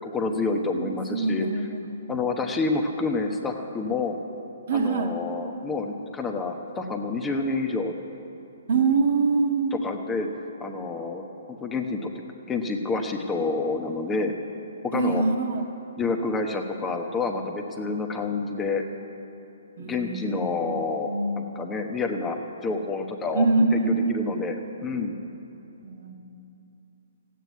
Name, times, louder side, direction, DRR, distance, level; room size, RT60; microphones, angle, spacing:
voice 1, 0.0-1.5 2.1-4.2 4.7-7.9 9.7-12.1 12.5-14.3 14.8-15.2 16.0-18.8 19.8-22.4 22.6-24.6 24.8-25.2, left 3 dB, 15° left, 2 dB, 1.1 m, -28 dB
voice 2, 0.7-2.0 4.7-5.1 8.7-9.8 14.9-15.6 19.8-20.7 21.1-21.5 23.3-24.4 25.8-26.2, right 4 dB, 55° right, 4 dB, 1.5 m, -24 dB
14.5 x 9.3 x 9.4 m, 2.8 s
hypercardioid pair, 135°, 0 cm